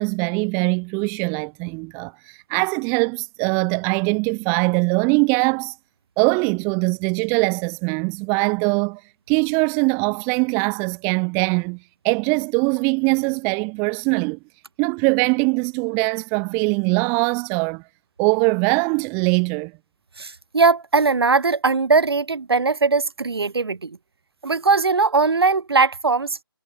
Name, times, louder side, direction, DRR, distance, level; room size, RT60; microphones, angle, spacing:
voice 1, 0.0-5.8 6.2-9.0 9.3-11.8 12.0-14.4 14.8-17.8 18.2-19.7, right 35 dB, 20° right, 2.0 m, -22 dB
voice 2, 20.2-24.0 24.4-26.4, right 4 dB, 70° right, 7.1 m, -20 dB
figure-of-eight pair, 150°, 13 cm